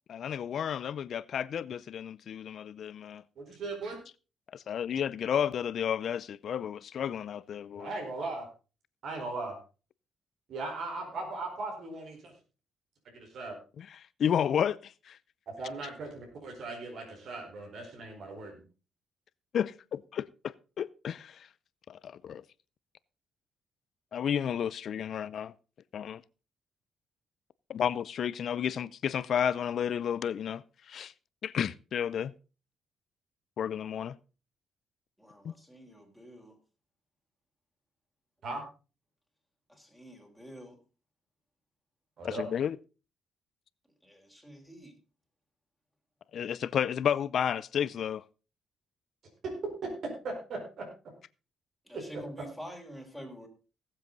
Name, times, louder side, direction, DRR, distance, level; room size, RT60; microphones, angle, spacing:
voice 1, 0.1-3.2 4.5-7.9 13.8-13.9 14.2-15.2 19.5-21.5 21.9-22.4 24.1-25.5 25.9-26.2 27.7-31.1 31.4-32.3 33.6-34.2 35.4-35.5 42.2-42.8 46.3-48.2, left 8 dB, 60° left, 0.5 m, -32 dB
voice 2, 3.4-4.0 7.7-8.5 9.0-9.6 10.5-12.3 13.1-13.5 15.5-18.6 38.4-38.6 42.2-42.4 49.4-49.5 49.8-50.9 51.9-52.2, right 3 dB, 60° right, 4.6 m, -38 dB
voice 3, 35.2-36.6 39.7-40.8 44.0-45.0 51.8-53.5, equal, 5° right, 4.2 m, -47 dB
18.0 x 7.6 x 4.0 m
cardioid pair, 90°, 0 cm